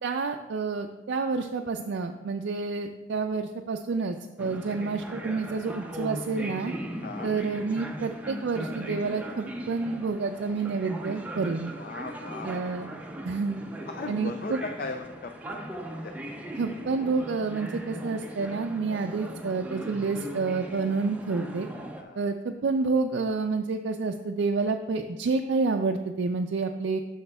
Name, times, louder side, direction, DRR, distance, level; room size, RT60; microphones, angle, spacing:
voice 1, 0.0-6.7 7.2-11.7 12.4-12.9 13.2-13.6 14.1-14.6 16.6-21.7 22.2-27.0, right 4 dB, 65° right, 4 dB, 0.4 m, -29 dB
sound 1, 4.4-22.0, right 1 dB, 10° right, 0.5 m, -39 dB
voice 2, 11.7-12.9 13.9-15.7 16.0-16.1 22.0-22.2, left 3 dB, 50° left, 6 dB, 0.3 m, -38 dB
10.5 x 6.4 x 2.3 m, 1.1 s
head